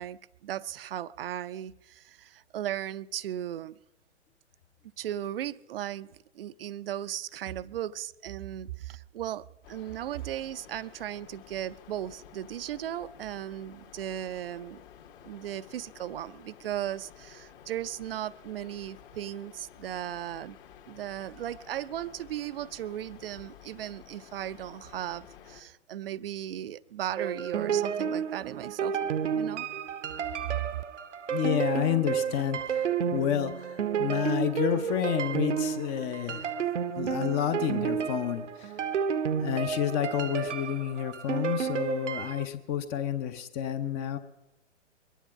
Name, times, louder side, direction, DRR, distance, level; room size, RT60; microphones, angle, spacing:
voice 1, 0.0-3.8 5.0-14.8 15.2-20.6 20.9-29.7, right 11 dB, 50° right, 17 dB, 0.5 m, -37 dB
sound 1, 9.6-25.6, left 9 dB, 45° left, 1.6 m, -52 dB
sound 2, 27.2-42.5, right 7 dB, 75° right, 0.8 m, -31 dB
voice 2, 31.3-36.5 37.0-38.7 39.4-44.2, left 10 dB, 20° left, 11 dB, 0.6 m, -30 dB
22.0 x 10.0 x 5.7 m, 0.97 s
figure-of-eight pair, 125°, 36 cm